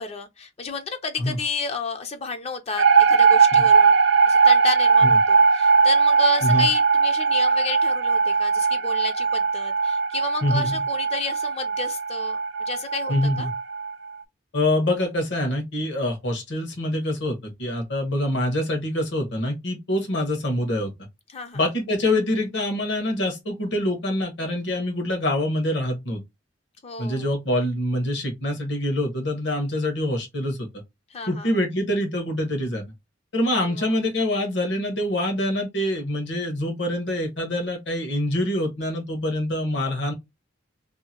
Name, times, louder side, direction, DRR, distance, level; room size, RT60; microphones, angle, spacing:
voice 1, 0.0-4.0 4.3-12.4 12.7-13.5 21.3-21.6 26.8-27.3 31.1-31.5 33.6-33.9, left 4 dB, 35° left, 0.4 m, -31 dB
sound 1, 2.8-13.9, right 5 dB, 70° right, 0.4 m, -19 dB
voice 2, 10.4-10.8 13.1-13.5 14.5-20.9 21.5-26.2 27.0-30.7 31.3-32.8 33.3-40.1, left 1 dB, 70° left, 1.1 m, -25 dB
2.7 x 2.5 x 2.7 m
head